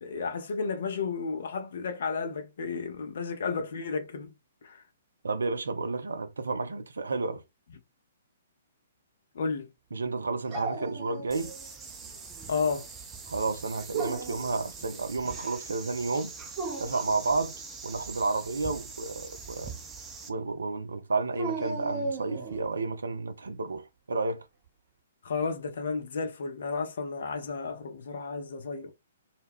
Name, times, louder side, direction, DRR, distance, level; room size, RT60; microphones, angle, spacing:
voice 1, 0.0-4.3 4.6-4.8 9.3-9.7 12.5-12.9 25.2-28.9, left 5 dB, 60° left, 0.7 m, -32 dB
voice 2, 5.2-7.4 9.9-11.5 13.3-16.3 16.8-17.5 17.8-19.7 20.3-24.4, right 3 dB, 75° right, 0.5 m, -31 dB
Dog, 10.5-11.6 12.0-12.7 13.7-14.5 16.4-17.1 21.3-22.7, right 3 dB, 35° right, 1.0 m, -35 dB
sound 1, 11.3-20.3, right 5 dB, 15° right, 0.5 m, -43 dB
2.2 x 2.2 x 3.5 m
figure-of-eight pair, 120°, 0 cm